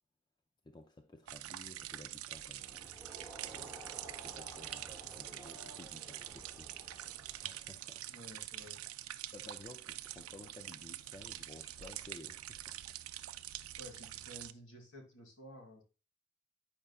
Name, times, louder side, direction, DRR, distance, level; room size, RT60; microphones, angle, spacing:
voice 1, 0.6-2.9 3.4-3.8 4.1-8.1 9.3-13.0, left 2 dB, 20° left, 0.4 m, -55 dB
sound 1, 1.3-14.5, right 13 dB, 85° right, 0.4 m, -46 dB
Crowd, 2.6-7.8, right 1 dB, 5° right, 0.9 m, -53 dB
voice 2, 8.1-8.8 13.8-15.8, equal, 60° left, 1.7 m, -53 dB
8.6 x 5.4 x 2.3 m
head